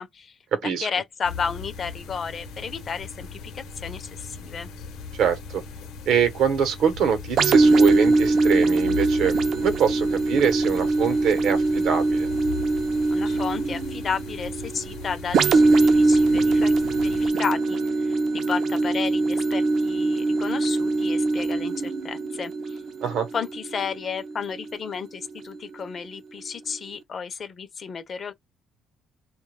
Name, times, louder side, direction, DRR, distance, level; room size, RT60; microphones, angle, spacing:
voice 1, 0.0-0.3 0.6-4.7 13.1-16.7 17.0-22.8 23.3-28.3, left 6 dB, 35° left, 0.5 m, -33 dB
voice 2, 0.5-0.9 5.2-5.6 6.1-12.3 23.0-23.3, right 7 dB, 65° right, 0.8 m, -24 dB
sound 1, 1.2-17.3, left 5 dB, 80° left, 0.8 m, -39 dB
sound 2, 7.4-24.9 25.4-25.6, right 3 dB, 50° right, 0.5 m, -22 dB
2.2 x 2.1 x 3.1 m
cardioid pair, 145°, 0 cm